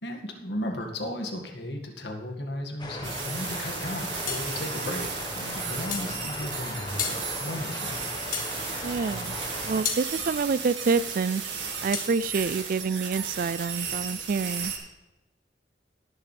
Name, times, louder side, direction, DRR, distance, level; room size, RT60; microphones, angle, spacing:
voice 1, 0.0-7.9, left 1 dB, 70° left, 2 dB, 2.0 m, -35 dB
sound 1, 2.8-9.8, left 1 dB, 25° left, 1.3 m, -37 dB
sound 2, 3.0-14.8, right 6 dB, 75° right, 2.0 m, -35 dB
sound 3, 4.3-4.5 5.9-6.1 7.0-7.2 8.3-8.5 9.8-10.1 11.9-12.1, left 6 dB, 50° left, 1.8 m, -31 dB
voice 2, 8.8-9.4 9.7-11.4 11.8-14.7, right 5 dB, 50° right, 18 dB, 0.4 m, -27 dB
19.0 x 7.1 x 3.4 m, 1.0 s
head